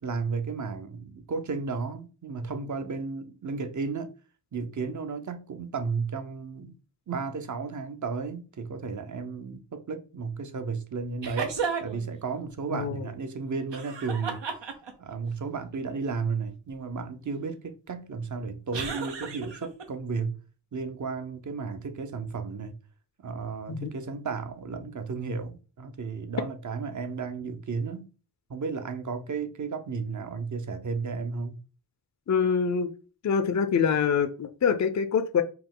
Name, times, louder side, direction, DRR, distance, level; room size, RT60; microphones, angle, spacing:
voice 1, 0.0-4.1 4.5-6.8 7.1-11.5 11.8-14.4 15.0-20.4 20.7-22.8 23.2-28.1 28.5-31.6, right 4 dB, 45° right, 0.7 m, -33 dB
sound 1, 11.2-12.1 13.7-15.1 18.7-19.8, right 5 dB, 80° right, 0.9 m, -33 dB
voice 2, 12.7-13.0 23.7-23.9 32.3-32.9 33.2-35.4, left 6 dB, 40° left, 0.5 m, -25 dB
4.8 x 2.8 x 3.8 m
wide cardioid pair, 120°, 42 cm